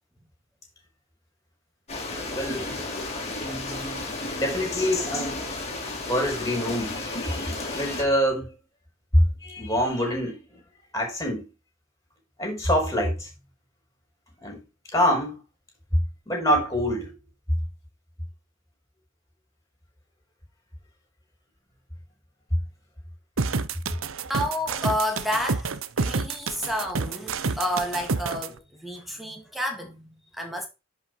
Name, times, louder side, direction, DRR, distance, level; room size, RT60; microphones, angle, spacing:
sound 1, 1.9-8.0, left 2 dB, 30° left, 2.9 m, -33 dB
voice 1, 2.3-2.8 3.4-5.4 6.1-8.5 9.1-10.6 10.9-11.5 12.4-13.3 14.4-14.6 14.9-15.4 15.9-17.1, equal, 15° left, 5.2 m, -26 dB
sound 2, 23.4-28.5, right 4 dB, 70° right, 0.8 m, -28 dB
voice 2, 24.3-30.1 30.3-30.7, equal, ahead, 2.6 m, -30 dB
10.5 x 5.5 x 4.8 m
head